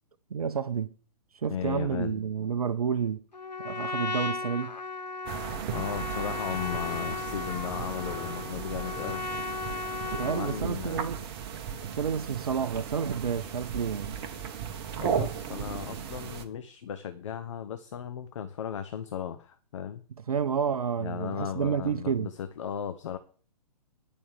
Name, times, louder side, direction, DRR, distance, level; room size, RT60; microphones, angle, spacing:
voice 1, 0.3-0.9 1.4-3.2 3.6-4.8 10.1-11.3 11.8-14.2 20.3-22.3, right 7 dB, 60° right, 0.7 m, -30 dB
voice 2, 1.5-2.2 5.7-9.3 10.2-11.2 15.0-20.0 21.0-23.2, left 8 dB, 45° left, 0.9 m, -36 dB
Trumpet, 3.3-10.7, left 4 dB, 85° left, 0.6 m, -36 dB
sound 1, 5.2-16.4, right 7 dB, 35° right, 1.2 m, -36 dB
11.0 x 5.3 x 6.6 m
figure-of-eight pair, 125°, 21 cm